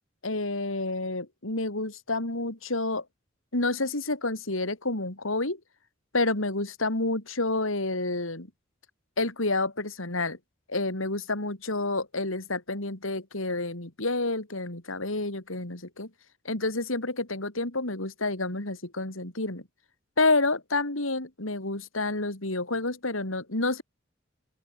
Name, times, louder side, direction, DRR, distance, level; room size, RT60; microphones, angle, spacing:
voice 1, 0.2-3.0 3.5-5.6 6.1-8.5 9.2-10.4 10.7-16.1 16.4-19.6 20.2-23.8, left 2 dB, 85° left, 4.1 m, -29 dB
open air
head